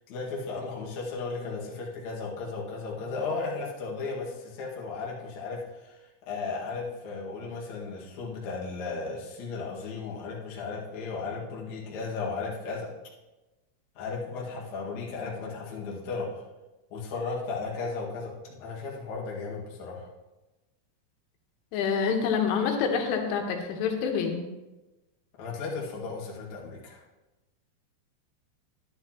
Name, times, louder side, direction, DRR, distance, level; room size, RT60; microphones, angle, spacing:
voice 1, 0.1-12.9 14.0-16.4 16.9-20.1 25.4-27.0, left 4 dB, 50° left, -4 dB, 2.4 m, -35 dB
voice 2, 21.7-24.4, left 6 dB, 90° left, 3 dB, 3.6 m, -27 dB
11.0 x 10.0 x 2.9 m, 1.1 s
omnidirectional pair, 5.5 m